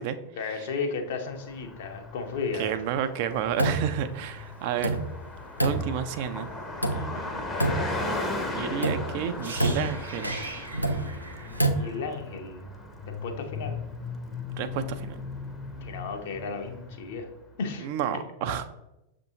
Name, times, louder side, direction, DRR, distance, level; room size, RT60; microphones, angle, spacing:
voice 1, 0.4-2.8 7.3-8.2 11.4-12.6 13.1-13.8 15.8-17.3 17.6-17.9, left 4 dB, 55° left, 4 dB, 0.6 m, -34 dB
Car passing by, 1.2-17.3, left 2 dB, 10° left, 0.6 m, -37 dB
voice 2, 2.6-5.0 5.6-6.5 6.9-7.3 8.5-10.3 14.6-15.2 17.8-18.7, right 9 dB, 45° right, 10 dB, 0.3 m, -31 dB
sound 1, 3.4-4.1 4.4-4.5 4.8-6.3 6.8-7.3 7.6-8.4 8.8-11.7, right 1 dB, 90° left, 0.3 m, -28 dB
sound 2, 9.4-13.3 13.5-13.7, right 3 dB, 70° right, 0.7 m, -41 dB
6.7 x 2.6 x 2.7 m, 0.90 s
figure-of-eight pair, 90°, 0 cm